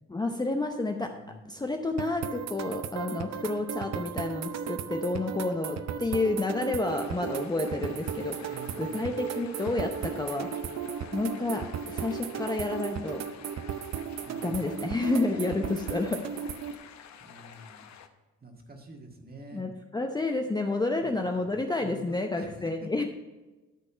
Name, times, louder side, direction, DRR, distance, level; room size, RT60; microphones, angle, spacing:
voice 1, 0.1-1.1 1.5-10.5 11.1-13.2 14.4-16.2 19.5-23.0, left 2 dB, 15° left, 4 dB, 0.7 m, -30 dB
voice 2, 1.1-1.7 8.4-9.3 14.2-14.8 17.2-18.0 18.4-19.7 21.0-22.7, right 1 dB, 30° right, 2 dB, 1.8 m, -47 dB
sound 1, 2.0-16.7, right 8 dB, 60° right, 0.7 m, -36 dB
sound 2, 6.9-18.1, left 8 dB, 65° left, 0.9 m, -50 dB
12.5 x 4.2 x 5.6 m, 1.2 s
cardioid pair, 90°, 30 cm